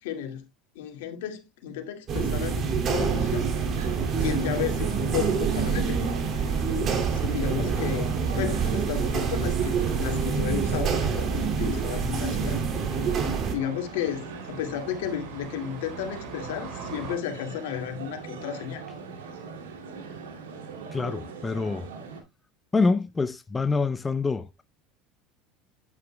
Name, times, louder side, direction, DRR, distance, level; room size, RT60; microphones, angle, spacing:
voice 1, 0.0-0.5 0.8-3.5 4.2-6.0 7.1-12.6 13.5-18.8, left 10 dB, 80° left, 2.1 m, -33 dB
sound 1, 2.1-13.5, right 6 dB, 45° right, 2.4 m, -26 dB
sound 2, 2.9-22.2, right 5 dB, 85° right, 2.5 m, -41 dB
sound 3, 5.9-17.2, right 4 dB, 60° right, 5.2 m, -45 dB
voice 2, 20.9-21.9 22.7-24.6, left 4 dB, 20° left, 0.6 m, -26 dB
9.6 x 9.3 x 2.2 m
hypercardioid pair, 95°, 0 cm